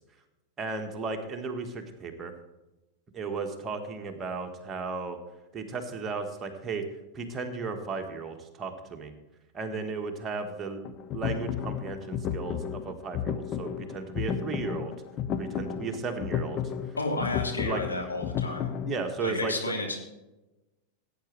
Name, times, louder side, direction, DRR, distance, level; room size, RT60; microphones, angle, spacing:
voice 1, 0.6-2.3 3.1-5.2 5.5-6.9 7.1-9.1 9.5-10.8 11.1-14.9 15.4-16.6 17.6-17.8 18.9-19.5, right 4 dB, 20° right, 4 dB, 1.6 m, -35 dB
sound 1, 10.8-19.0, left 8 dB, 35° left, 0.7 m, -33 dB
voice 2, 17.0-18.7 19.2-20.0, left 2 dB, 80° left, 1 dB, 2.5 m, -31 dB
16.5 x 9.0 x 3.3 m, 1.0 s
figure-of-eight pair, 90°, 0 cm